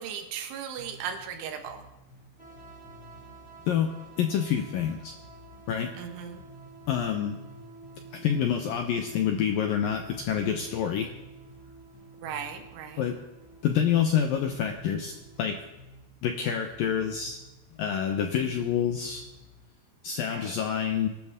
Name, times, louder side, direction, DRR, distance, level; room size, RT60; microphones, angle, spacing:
voice 1, 0.0-1.8 6.0-6.4 12.2-13.0 18.4-18.5 20.3-20.6, right 8 dB, 85° right, 5 dB, 3.9 m, -37 dB
sound 1, 0.8-19.6, equal, 60° left, 6.8 m, -53 dB
sound 2, 2.4-15.6, right 4 dB, 10° left, 4.4 m, -51 dB
voice 2, 4.2-5.1 5.7-5.9 6.9-7.4 8.1-11.1 13.0-13.2 13.6-15.6 16.2-17.4 17.8-19.3 20.0-21.1, left 8 dB, 80° left, 5 dB, 2.0 m, -27 dB
25.0 x 12.5 x 3.7 m, 1.0 s
omnidirectional pair, 5.3 m